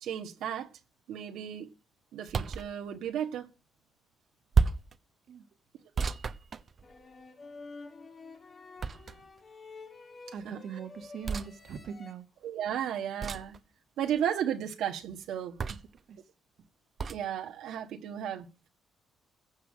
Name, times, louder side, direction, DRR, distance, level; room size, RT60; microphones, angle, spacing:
voice 1, 0.0-0.7 1.1-1.7 2.1-3.5 10.4-10.6 12.4-13.6 14.0-15.6 17.1-18.7, right 9 dB, 85° right, 1.6 m, -34 dB
sound 1, 2.3-2.7 4.5-5.0 6.0-7.1 8.8-9.4 11.2-11.5 13.2-13.6 15.6-16.0 17.0-17.2, right 5 dB, 45° right, 1.0 m, -30 dB
sound 2, 6.8-12.1, left 3 dB, 45° left, 3.0 m, -49 dB
voice 2, 10.3-12.2 16.1-16.2, right 7 dB, 65° right, 1.6 m, -41 dB
15.5 x 5.7 x 9.6 m
cardioid pair, 90°, 0 cm